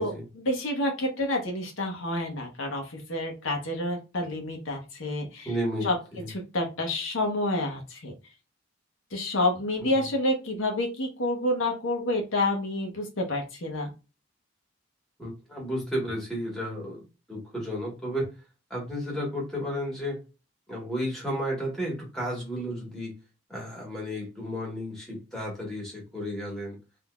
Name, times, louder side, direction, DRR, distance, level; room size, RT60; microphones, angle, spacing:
voice 1, 0.0-5.5 5.8-6.0 6.3-8.1 9.1-13.9, left 1 dB, 70° left, 1 dB, 0.8 m, -29 dB
voice 2, 5.4-6.3 9.8-10.0 15.2-17.0 17.3-18.3 18.7-20.2 20.7-23.1 23.5-26.8, equal, ahead, -2 dB, 1.3 m, -33 dB
3.6 x 2.6 x 2.3 m, 0.29 s
head